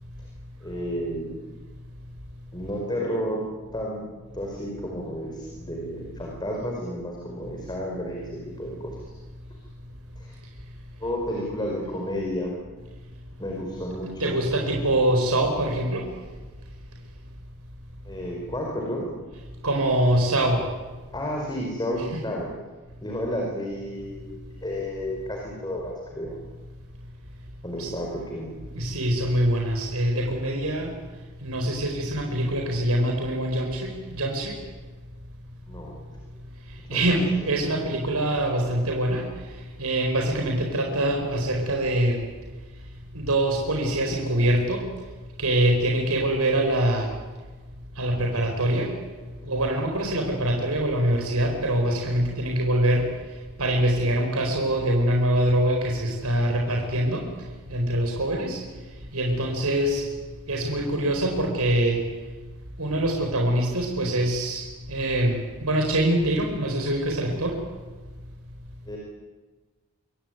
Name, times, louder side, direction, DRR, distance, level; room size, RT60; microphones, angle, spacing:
voice 1, 0.6-1.5 2.5-3.4 3.7-8.3 8.6-8.9 10.2-10.3 11.0-12.6 13.4-14.4 18.0-19.0 21.1-22.5 23.0-26.4 27.6-28.5 35.7-36.0 36.9-37.0 37.6-37.7 49.4-49.6 68.9-69.0, equal, 20° left, -1 dB, 5.1 m, -31 dB
voice 2, 14.2-16.1 19.6-20.6 27.8-27.9 28.7-30.9 31.4-34.6 36.9-39.2 39.8-42.2 43.1-44.9 45.4-47.1 48.0-48.9 49.4-53.1 53.6-57.3 57.7-58.6 59.1-60.1 60.5-62.0 62.8-67.6, right 1 dB, 85° right, 1 dB, 4.8 m, -24 dB
26.5 x 23.0 x 9.5 m, 1.3 s
head